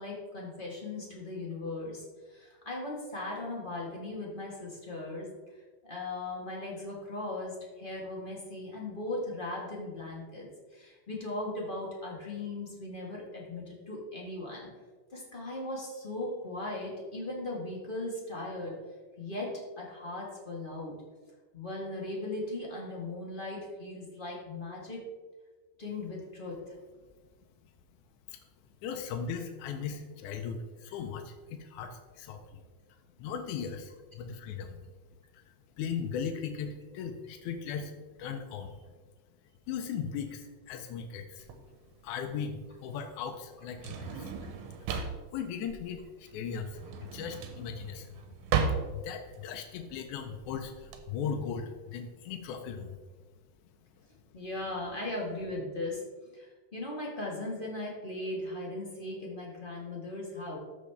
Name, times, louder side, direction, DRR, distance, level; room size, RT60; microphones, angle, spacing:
voice 1, 0.0-5.3 5.8-10.5 10.7-14.7 15.1-18.7 19.2-21.0 21.5-25.0 25.8-26.7 54.3-56.0 56.3-60.6, left 2 dB, 35° left, -3 dB, 0.8 m, -38 dB
voice 2, 28.8-32.6 33.2-34.8 35.3-35.4 35.8-37.9 38.2-38.8 39.7-41.5 42.0-44.3 44.9-45.0 45.3-48.1 48.9-53.0, left 6 dB, 85° left, 5 dB, 2.0 m, -38 dB
Drawer open or close, 41.4-51.0, right 6 dB, 85° right, 2.3 m, -36 dB
13.5 x 5.2 x 3.4 m, 1.3 s
omnidirectional pair, 3.5 m